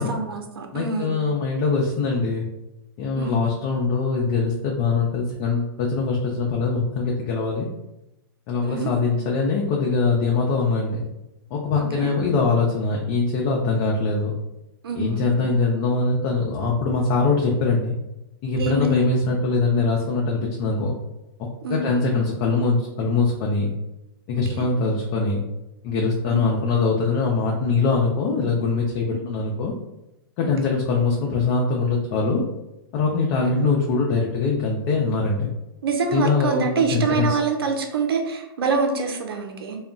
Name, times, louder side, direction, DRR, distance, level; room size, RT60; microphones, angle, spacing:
voice 1, 0.0-1.2 3.1-3.4 8.6-8.9 11.8-12.1 14.8-15.5 18.6-19.1 21.6-21.8 24.5-24.7 26.3-26.4 29.1-29.2 30.4-30.7 33.4-33.7 35.8-39.8, right 4 dB, 85° right, 3 dB, 0.5 m, -26 dB
voice 2, 0.7-2.5 3.0-7.7 8.5-11.1 11.5-14.3 15.0-18.0 18.4-20.9 21.7-23.7 24.3-25.4 25.8-29.7 30.4-32.4 32.9-35.5 36.1-37.4, left 4 dB, 40° left, -1 dB, 0.5 m, -22 dB
2.3 x 2.1 x 3.7 m, 0.95 s
hypercardioid pair, 130°, 12 cm